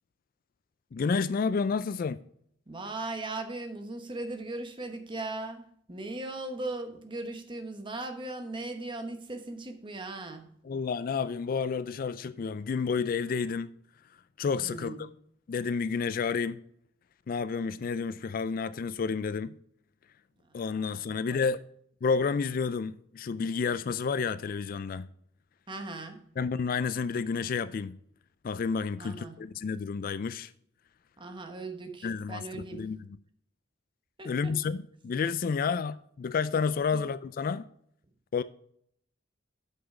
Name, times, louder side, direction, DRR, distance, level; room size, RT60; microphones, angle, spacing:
voice 1, 0.9-2.2 10.6-13.7 14.4-15.1 15.5-16.6 17.3-19.6 20.5-21.6 22.0-25.1 26.4-28.0 28.4-30.5 32.0-33.2 34.2-37.7 38.3-38.4, left 5 dB, 45° left, 0.3 m, -30 dB
voice 2, 2.7-10.4 14.5-15.1 21.1-21.4 25.7-26.2 29.0-29.4 31.2-32.8 34.2-34.5, right 2 dB, 25° right, 1.1 m, -38 dB
8.2 x 6.0 x 4.9 m
head